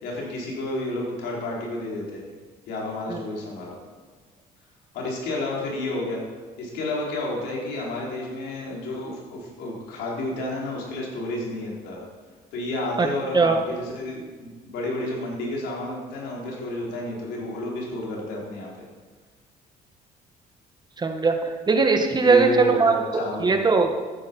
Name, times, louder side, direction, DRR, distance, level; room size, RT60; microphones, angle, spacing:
voice 1, 0.0-2.2 2.7-3.8 4.9-6.2 6.6-12.1 12.5-18.7 22.2-23.7, left 1 dB, 85° left, -3 dB, 4.5 m, -30 dB
voice 2, 21.0-22.9 23.4-23.9, right 4 dB, 25° right, 5 dB, 1.4 m, -19 dB
13.5 x 10.0 x 5.5 m, 1.4 s
cardioid pair, 110°, 17 cm